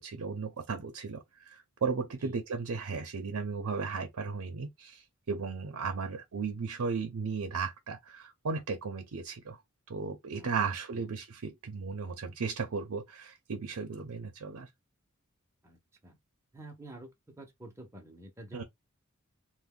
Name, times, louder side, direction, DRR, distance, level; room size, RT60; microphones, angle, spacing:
voice 1, 0.0-9.6 9.9-14.7 18.5-18.6, right 5 dB, 75° right, 0.5 m, -35 dB
voice 2, 15.6-16.2 16.5-18.6, right 1 dB, 15° right, 0.6 m, -48 dB
2.6 x 2.1 x 3.6 m
head